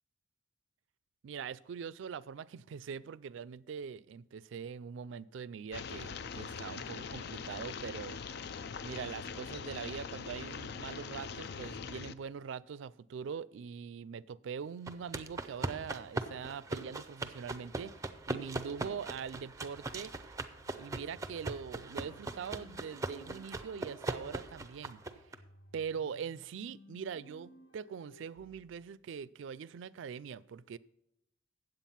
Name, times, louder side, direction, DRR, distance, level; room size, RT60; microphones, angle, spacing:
voice 1, 1.2-8.2 8.8-17.9 18.3-20.1 20.8-25.0 25.7-30.8, right 6 dB, 80° right, 0.3 m, -42 dB
sound 1, 5.7-12.1, left 6 dB, 60° left, 0.4 m, -42 dB
sound 2, 14.9-25.4, right 2 dB, 15° right, 0.5 m, -40 dB
sound 3, 20.0-28.6, left 1 dB, 80° left, 0.8 m, -59 dB
9.0 x 7.8 x 5.6 m
head